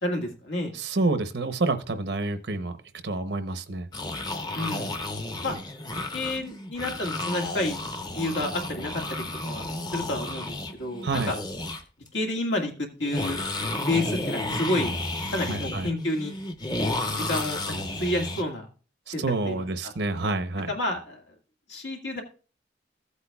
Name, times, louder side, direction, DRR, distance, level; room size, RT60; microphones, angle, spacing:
voice 1, 0.0-0.7 4.5-4.9 5.4-5.5 5.9-7.8 8.1-9.0 9.4-11.4 12.1-13.4 13.8-14.9 15.3-16.3 17.1-18.7 19.1-19.9 20.7-21.2 21.7-22.2, left 1 dB, 90° left, 3 dB, 1.9 m, -30 dB
voice 2, 0.7-2.7 3.0-3.9 11.0-11.3 15.5-15.9 19.2-20.7, right 3 dB, 75° right, 10 dB, 0.8 m, -28 dB
sound 1, 3.9-11.8 12.1-12.2 13.0-18.4, left 2 dB, 20° left, 0.7 m, -32 dB
15.5 x 8.2 x 2.3 m, 0.36 s
head